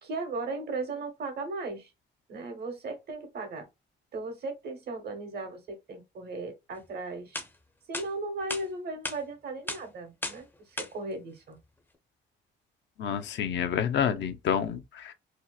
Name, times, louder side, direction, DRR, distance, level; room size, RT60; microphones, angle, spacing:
voice 1, 0.0-1.9 2.3-3.7 4.1-7.4 7.9-11.6, right 3 dB, 55° right, 0.9 m, -37 dB
sound 1, 6.9-7.0 7.3-7.5 7.9-8.1 8.5-8.6 9.0-9.2 9.7-9.8 10.2-10.4 10.8-10.9, left 2 dB, 10° left, 0.5 m, -34 dB
voice 2, 13.0-15.1, left 8 dB, 65° left, 0.5 m, -29 dB
2.7 x 2.0 x 2.3 m
cardioid pair, 90°, 20 cm